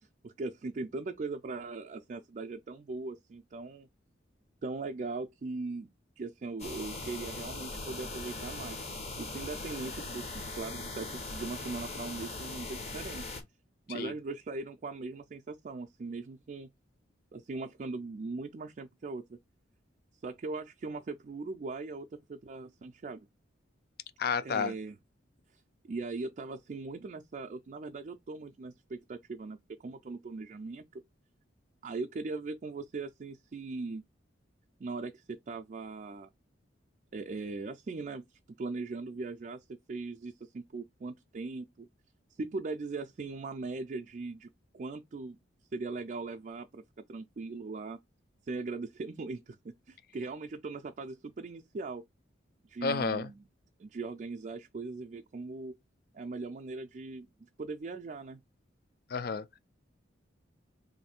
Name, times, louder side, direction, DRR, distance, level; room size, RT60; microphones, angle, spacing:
voice 1, 0.0-3.9 4.6-5.9 6.2-8.9 9.2-13.3 13.9-16.7 17.3-19.4 20.2-23.3 24.4-25.0 25.5-31.0 31.8-34.0 34.8-36.3 37.1-41.9 42.4-44.5 44.7-45.4 45.7-46.8 47.1-48.0 48.4-52.0 52.7-53.3 53.8-55.8 56.1-57.3 57.6-58.4, right 3 dB, 40° right, 0.3 m, -40 dB
sound 1, 6.6-13.4, left 2 dB, 35° left, 0.9 m, -40 dB
voice 2, 24.2-24.7 52.8-53.3 59.1-59.5, left 5 dB, 50° left, 0.4 m, -31 dB
3.1 x 2.6 x 4.2 m
head